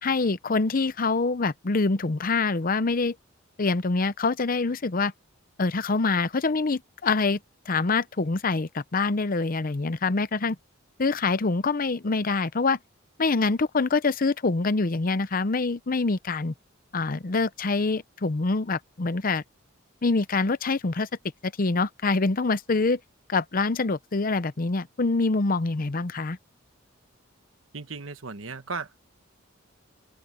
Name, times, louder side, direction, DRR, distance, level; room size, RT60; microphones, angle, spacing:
voice 1, 0.0-3.1 3.6-5.1 5.6-7.4 7.7-10.6 11.0-12.8 13.2-16.5 16.9-19.4 20.0-21.1 21.4-23.0 23.3-26.4, left 3 dB, 45° left, 0.7 m, -25 dB
voice 2, 27.7-29.0, right 4 dB, 85° right, 1.3 m, -36 dB
open air
head